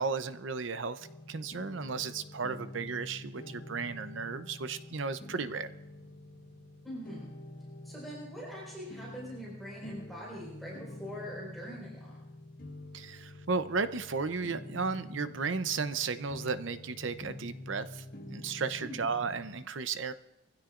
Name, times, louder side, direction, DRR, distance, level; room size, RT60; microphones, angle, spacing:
voice 1, 0.0-5.7 12.9-20.1, right 4 dB, 70° right, 12 dB, 0.7 m, -34 dB
sound 1, 1.0-19.6, left 1 dB, 45° left, 1.5 m, -47 dB
voice 2, 6.8-7.3 7.8-12.2 18.8-19.1, equal, ahead, -6 dB, 4.7 m, -43 dB
23.5 x 16.0 x 2.5 m, 0.94 s
head